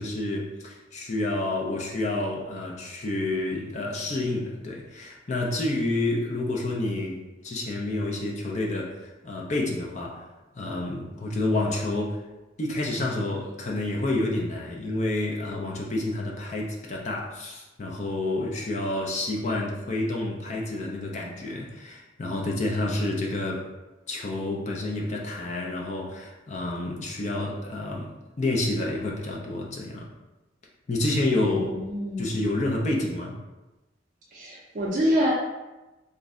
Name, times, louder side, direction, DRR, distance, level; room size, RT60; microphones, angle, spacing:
voice 1, 0.0-10.3 10.5-12.2 12.6-23.7 24.1-30.1 30.9-31.8 32.2-33.4, left 2 dB, 40° left, -2 dB, 0.5 m, -29 dB
voice 2, 31.7-32.4 34.3-35.3, equal, 45° right, -4 dB, 0.5 m, -26 dB
2.5 x 2.1 x 3.6 m, 1.1 s
head